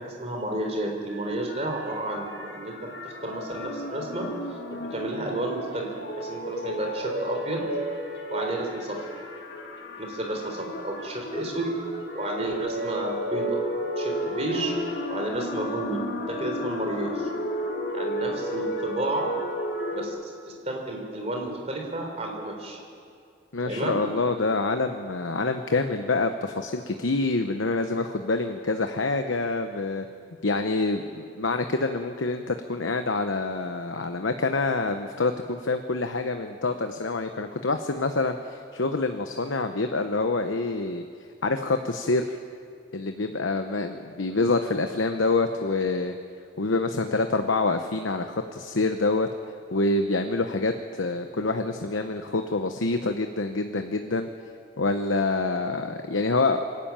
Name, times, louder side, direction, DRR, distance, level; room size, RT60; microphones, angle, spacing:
voice 1, 0.0-2.7 3.0-4.3 4.7-5.9 6.2-7.6 8.3-9.0 10.0-11.7 12.1-14.8 15.1-16.0 16.3-17.3 17.9-19.3 19.9-20.3 20.6-22.8 23.6-24.0, right 1 dB, 35° right, 1 dB, 4.0 m, -31 dB
sound 1, 1.1-20.0, equal, 60° left, 2.3 m, -33 dB
voice 2, 23.5-30.1 30.4-41.0 41.4-42.4 42.9-46.1 46.6-49.3 49.7-54.3 54.8-56.6, left 3 dB, 85° left, 6 dB, 1.0 m, -26 dB
26.0 x 12.0 x 8.9 m, 2.3 s
head